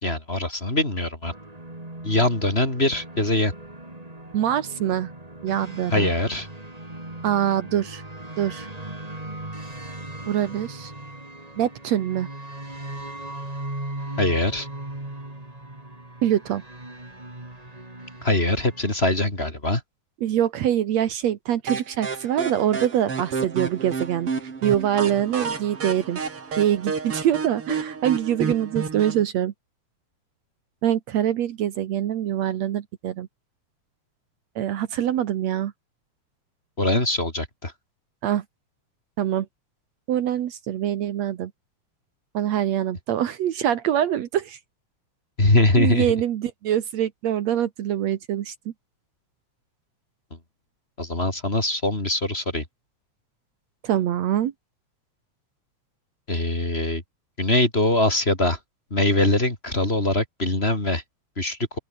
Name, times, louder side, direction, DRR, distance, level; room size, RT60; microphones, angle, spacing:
voice 1, 0.0-1.3 2.0-3.5 5.9-6.5 14.2-14.7 18.2-19.8 36.8-37.7 45.4-46.1 51.0-52.6 56.3-57.0 57.4-58.6 58.9-61.0 61.4-61.6, left 2 dB, 20° left, 4.1 m, -22 dB
sound 1, 1.2-19.0, right 1 dB, 10° right, 3.5 m, -38 dB
voice 2, 4.3-5.1 5.4-6.1 7.2-8.0 8.4-8.7 10.3-10.9 11.6-12.3 16.2-16.6 20.2-24.3 24.6-26.2 26.6-29.5 30.8-33.3 34.6-35.7 38.2-38.4 39.2-39.5 40.1-41.5 42.3-44.6 45.8-48.7 53.8-54.5, right 11 dB, 70° right, 2.3 m, -24 dB
sound 2, 21.7-29.2, right 5 dB, 50° right, 4.4 m, -31 dB
open air
omnidirectional pair, 3.3 m